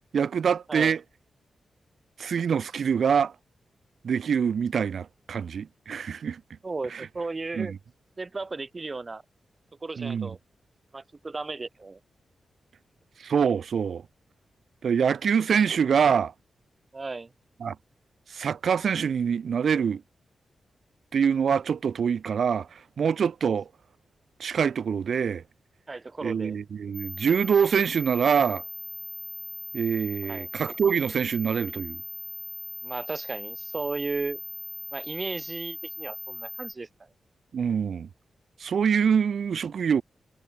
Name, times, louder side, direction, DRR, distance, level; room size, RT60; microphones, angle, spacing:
voice 1, 0.1-1.0 2.2-3.3 4.0-6.4 6.9-7.1 7.6-7.8 10.0-10.3 13.2-14.0 14.8-16.3 17.6-17.8 18.3-20.0 21.1-23.7 24.4-25.4 26.2-28.6 29.7-32.0 37.5-38.1 38.6-40.0, right 7 dB, 70° right, 0.4 m, -25 dB
voice 2, 6.6-7.7 8.2-9.2 9.8-10.4 10.9-12.0 16.9-17.3 23.5-23.6 25.9-26.6 30.2-30.5 32.8-34.4 34.9-36.9, right 3 dB, 30° right, 1.4 m, -35 dB
sound 1, 26.9-36.7, right 1 dB, 10° right, 2.1 m, -39 dB
wide cardioid pair, 115°, 0 cm